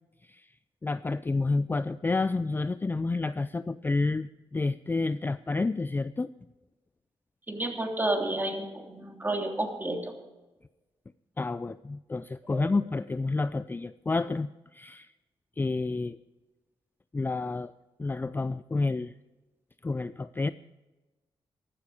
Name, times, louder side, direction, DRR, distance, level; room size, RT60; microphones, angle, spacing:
voice 1, 0.8-6.3 11.4-15.1 15.6-16.2 17.1-17.7 18.0-19.1 19.8-20.5, left 3 dB, 20° left, 14 dB, 0.4 m, -29 dB
voice 2, 7.5-10.1 12.5-12.7, right 1 dB, 20° right, 2 dB, 3.2 m, -31 dB
15.0 x 13.0 x 5.0 m, 1.1 s
cardioid pair, 80°, 10 cm